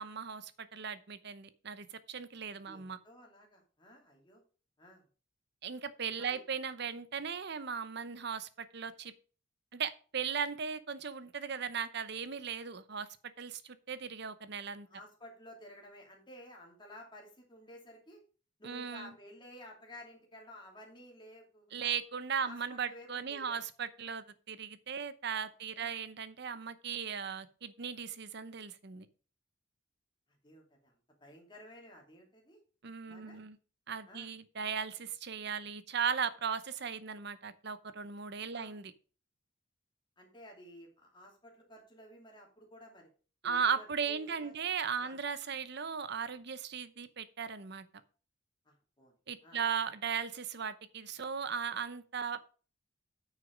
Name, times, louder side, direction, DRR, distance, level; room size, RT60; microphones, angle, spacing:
voice 1, 0.0-3.0 5.6-9.1 9.7-13.1 13.4-14.9 18.6-19.1 21.7-29.1 32.8-33.6 33.9-38.9 43.4-47.9 49.3-52.4, right 6 dB, 55° right, 0.8 m, -37 dB
voice 2, 2.6-4.4 4.8-5.1 6.2-6.4 14.9-18.2 18.6-21.9 22.4-23.6 25.5-25.9 30.4-30.9 31.2-32.6 33.0-33.4 34.1-34.3 38.5-38.7 40.2-43.1 43.4-44.5 45.0-45.2 48.6-49.1 49.4-49.6, left 1 dB, 25° left, 2.7 m, -53 dB
9.2 x 6.3 x 5.1 m
head